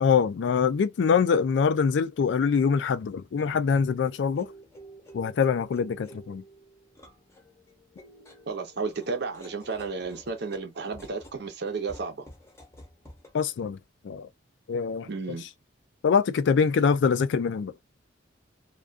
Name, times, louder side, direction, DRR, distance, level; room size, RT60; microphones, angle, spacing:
voice 1, 0.0-4.5 5.1-6.4 13.3-13.8 14.0-14.3 14.7-15.1 16.0-17.7, left 6 dB, 65° left, 0.3 m, -24 dB
sound 1, 3.2-13.3, equal, 15° left, 0.7 m, -51 dB
voice 2, 8.5-12.3 15.0-15.5, right 4 dB, 60° right, 0.6 m, -33 dB
2.3 x 2.2 x 2.4 m
head